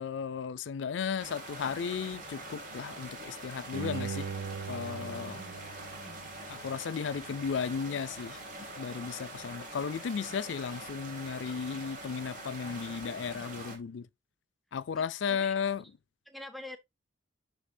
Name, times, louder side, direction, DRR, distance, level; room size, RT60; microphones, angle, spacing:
voice 1, 0.0-4.3 4.7-5.4 6.5-8.4 8.8-14.1 14.7-15.8, left 6 dB, 70° left, 0.4 m, -35 dB
sound 1, 1.2-13.8, right 2 dB, 45° right, 2.6 m, -44 dB
Bowed string instrument, 3.7-6.8 7.3-7.4, right 6 dB, 80° right, 0.6 m, -40 dB
voice 2, 4.9-5.6 5.9-6.2 14.9-15.0 15.3-15.6 16.3-16.8, left 1 dB, ahead, 0.4 m, -47 dB
6.6 x 5.5 x 2.6 m
head